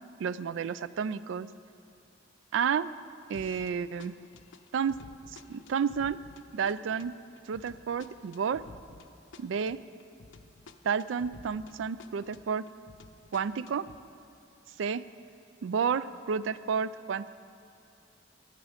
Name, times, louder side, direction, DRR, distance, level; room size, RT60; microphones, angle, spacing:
voice 1, 0.2-1.5 2.5-2.9 3.3-4.1 4.7-5.0 5.3-6.2 6.5-7.1 7.5-8.6 9.4-9.8 10.8-12.6 13.3-13.9 14.8-15.0 15.6-17.3, right 6 dB, 75° right, 16 dB, 0.3 m, -31 dB
sound 1, 3.3-3.7 4.0-11.7 12.0-14.0, left 3 dB, 75° left, 0.7 m, -52 dB
14.0 x 11.0 x 5.0 m, 2.5 s
head